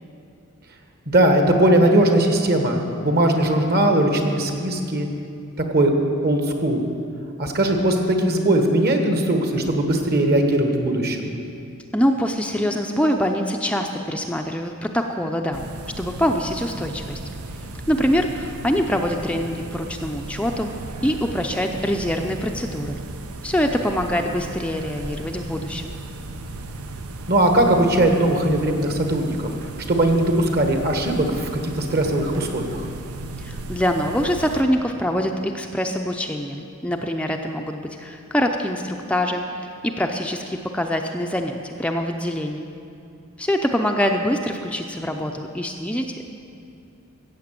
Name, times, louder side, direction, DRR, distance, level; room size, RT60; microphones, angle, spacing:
voice 1, 1.1-5.1 5.7-5.9 6.2-6.8 7.4-11.3 27.3-29.4 29.9-32.9, right 1 dB, 45° right, 4 dB, 1.5 m, -19 dB
voice 2, 11.9-15.7 16.0-17.2 17.9-20.7 21.0-23.0 23.4-26.0 33.4-42.7 43.4-46.2, equal, 5° left, 3 dB, 0.5 m, -24 dB
sound 1, 15.5-34.6, right 2 dB, 85° right, 0.8 m, -35 dB
15.0 x 7.7 x 7.5 m, 2.6 s
head